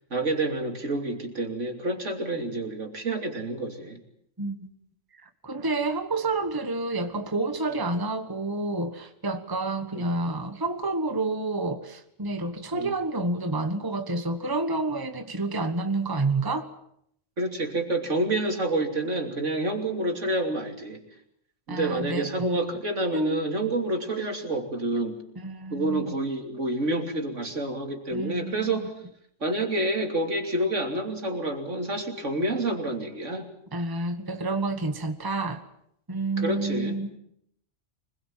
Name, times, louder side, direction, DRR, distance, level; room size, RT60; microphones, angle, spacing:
voice 1, 0.1-4.0 9.9-10.0 12.7-12.9 17.4-21.0 21.7-25.2 25.7-28.9 29.4-33.5 36.4-37.0, right 2 dB, 70° right, 4 dB, 3.4 m, -28 dB
voice 2, 4.4-4.7 5.2-16.7 21.7-22.8 23.1-23.4 25.4-26.1 28.1-28.9 33.7-35.6 36.1-37.2, right 2 dB, 15° right, 8 dB, 1.5 m, -29 dB
25.5 x 21.0 x 7.5 m, 0.71 s
omnidirectional pair, 1.3 m